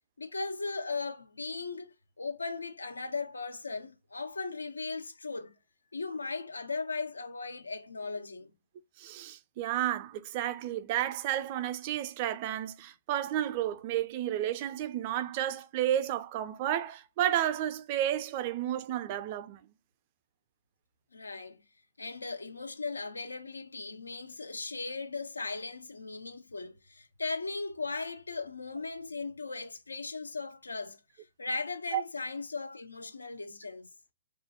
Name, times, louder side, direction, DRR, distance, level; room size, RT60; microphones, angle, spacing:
voice 1, 0.2-5.5 5.9-8.5 21.1-21.6 22.0-33.9, left 3 dB, 85° left, 0.4 m, -38 dB
voice 2, 9.0-19.6 31.9-32.0, right 12 dB, 40° right, 0.3 m, -32 dB
2.4 x 2.0 x 2.8 m
figure-of-eight pair, 120°, 0 cm